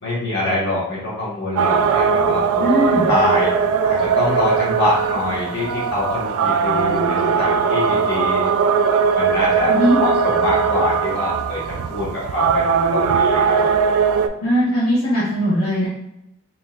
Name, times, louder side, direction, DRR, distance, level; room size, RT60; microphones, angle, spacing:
voice 1, 0.0-3.5 3.8-8.5 9.1-9.7 10.0-13.6, left 2 dB, 55° left, -7 dB, 1.5 m, -24 dB
sound 1, 1.6-14.3, right 6 dB, 85° right, 0.3 m, -19 dB
voice 2, 2.6-3.1 9.7-10.0 14.4-15.9, equal, 70° left, -9 dB, 1.0 m, -19 dB
3.7 x 3.0 x 2.5 m, 0.82 s
head